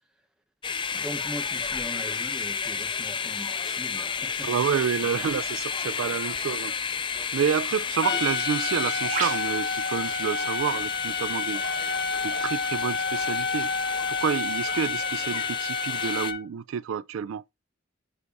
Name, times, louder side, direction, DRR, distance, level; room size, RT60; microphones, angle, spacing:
sound 1, 0.6-16.3, left 6 dB, 25° left, 0.5 m, -32 dB
voice 1, 0.9-4.5 8.1-8.2, equal, 5° right, 1.3 m, -40 dB
voice 2, 4.4-6.7 7.3-11.6 12.2-13.7 14.1-17.4, right 7 dB, 75° right, 0.3 m, -29 dB
Trumpet, 8.0-16.4, left 4 dB, 55° left, 0.9 m, -30 dB
Bird, 8.4-14.8, right 4 dB, 45° right, 2.0 m, -41 dB
8.4 x 4.6 x 2.6 m
head